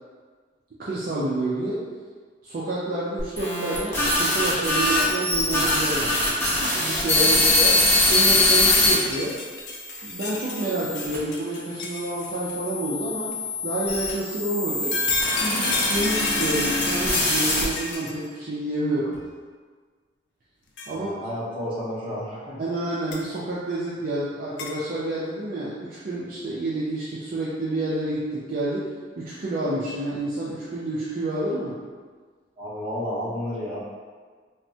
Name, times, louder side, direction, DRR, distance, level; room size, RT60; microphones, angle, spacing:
voice 1, 0.8-1.8 2.4-6.1 6.6-7.8 8.1-9.4 10.0-13.3 13.6-15.0 15.4-19.2 20.9-21.1 22.6-31.8, right 2 dB, 50° right, -8 dB, 0.4 m, -29 dB
sound 1, 3.2-8.9 9.6-11.2 12.0-17.9, left 2 dB, 15° left, 0.7 m, -23 dB
sound 2, 8.5-8.6 8.8-12.5 13.3-13.4 14.7-18.3 19.1-19.2 20.8-20.9 23.1-23.2 24.6-24.7, left 4 dB, 65° left, 0.4 m, -30 dB
voice 2, 20.9-22.6 32.6-33.8, equal, 30° right, -8 dB, 0.8 m, -31 dB
3.3 x 2.0 x 2.6 m, 1.5 s
head